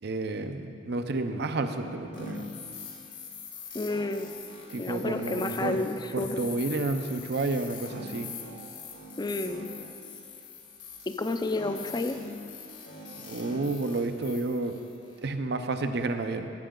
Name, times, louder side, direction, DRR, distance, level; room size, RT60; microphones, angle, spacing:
voice 1, 0.0-2.5 4.7-5.8 6.1-8.3 13.2-14.8 15.2-16.5, right 2 dB, 65° right, 7 dB, 0.6 m, -30 dB
sound 1, 2.1-15.2, left 4 dB, 75° left, 1.9 m, -42 dB
voice 2, 3.7-4.3 4.8-6.5 9.2-9.7 11.1-12.2, left 2 dB, 25° left, 8 dB, 0.4 m, -30 dB
14.0 x 7.8 x 3.8 m, 2.5 s
head